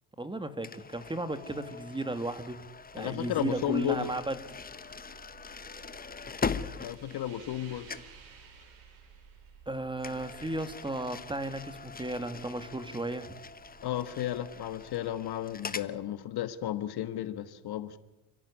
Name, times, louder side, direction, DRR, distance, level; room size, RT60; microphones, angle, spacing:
voice 1, 0.2-2.6 2.9-4.4 9.7-13.3, right 2 dB, 10° right, 11 dB, 2.0 m, -34 dB
sound 1, 0.6-7.6 7.9-8.2 10.0-15.9, left 5 dB, 20° left, 1.1 m, -41 dB
sound 2, 2.4-16.2, right 6 dB, 75° right, 5.1 m, -56 dB
voice 2, 3.0-4.1 6.8-7.9 13.8-18.0, left 12 dB, 55° left, 13 dB, 1.6 m, -33 dB
30.0 x 11.0 x 9.8 m, 0.95 s
supercardioid pair, 90°, 45 cm